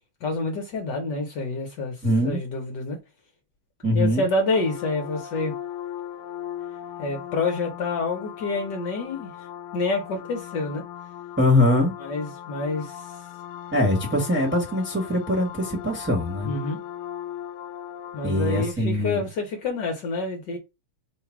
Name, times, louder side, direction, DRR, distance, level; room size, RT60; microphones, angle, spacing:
voice 1, 0.2-3.0 3.9-5.6 7.0-9.3 9.7-10.8 12.0-13.1 16.4-16.8 18.1-20.6, left 3 dB, 60° left, 1.4 m, -28 dB
voice 2, 2.0-2.4 3.8-4.3 11.4-12.0 13.7-16.5 18.2-19.2, left 1 dB, 5° right, 1.2 m, -22 dB
sound 1, 4.5-18.7, left 11 dB, 85° left, 1.5 m, -38 dB
3.9 x 2.3 x 4.5 m
omnidirectional pair, 2.4 m